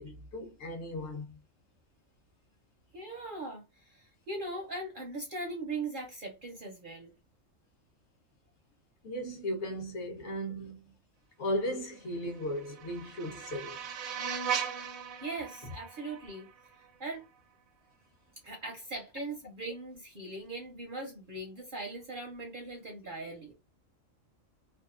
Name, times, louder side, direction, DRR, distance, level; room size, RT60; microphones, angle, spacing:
voice 1, 0.0-1.3 9.0-10.9 11.4-13.8, equal, 60° left, 1.0 m, -36 dB
voice 2, 2.9-7.1 15.2-16.5 16.8-17.2 18.4-23.5, right 2 dB, 55° right, 0.6 m, -40 dB
sound 1, 12.2-17.3, right 7 dB, 85° right, 1.0 m, -38 dB
2.7 x 2.3 x 2.3 m
omnidirectional pair, 1.4 m